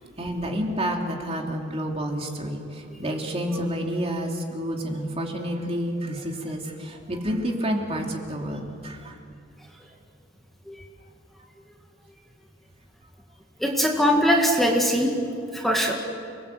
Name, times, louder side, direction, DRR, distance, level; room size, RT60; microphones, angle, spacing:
voice 1, 0.2-9.2, equal, 30° right, 1 dB, 3.0 m, -29 dB
voice 2, 13.6-15.1 15.5-15.9, equal, ahead, -1 dB, 2.2 m, -21 dB
30.0 x 20.0 x 8.1 m, 2.3 s
head